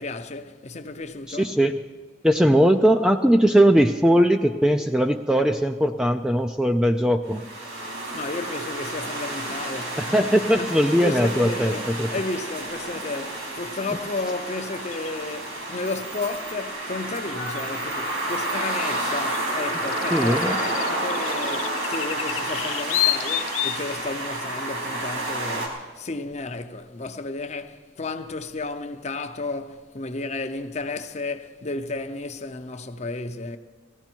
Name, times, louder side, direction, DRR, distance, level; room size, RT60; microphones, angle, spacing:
voice 1, 0.0-1.5 8.1-10.3 10.5-10.7 11.0-11.8 12.1-33.6, left 2 dB, 35° left, 0.7 m, -33 dB
voice 2, 1.3-1.8 2.2-7.4 10.0-12.1 20.1-20.6, equal, 5° right, 0.4 m, -20 dB
sound 1, 7.3-25.7, right 1 dB, 80° right, 4.0 m, -30 dB
sound 2, 14.9-15.1 17.6-17.7 19.3-23.9, left 16 dB, 85° left, 0.5 m, -29 dB
19.0 x 15.0 x 4.5 m
head